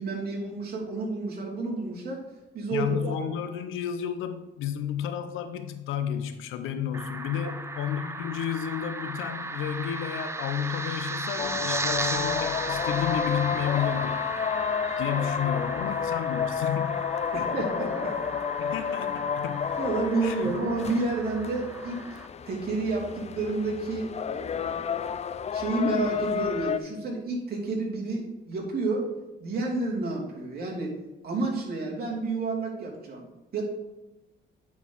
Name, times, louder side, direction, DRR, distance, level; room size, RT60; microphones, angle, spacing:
voice 1, 0.0-2.2 2.5-3.1 7.4-7.5 17.3-18.2 19.8-22.1 22.5-25.0 25.5-29.1 29.4-30.9 31.2-33.6, right 3 dB, 50° right, -3 dB, 2.8 m, -30 dB
voice 2, 2.7-14.3 15.0-17.1 18.6-19.8 20.2-20.5, left 9 dB, 90° left, 9 dB, 0.8 m, -32 dB
sound 1, 6.9-22.3, right 2 dB, 15° right, 0.6 m, -36 dB
sound 2, 11.4-26.8, left 7 dB, 35° left, 0.4 m, -31 dB
9.5 x 4.7 x 4.0 m, 1.0 s
cardioid pair, 90°, 20 cm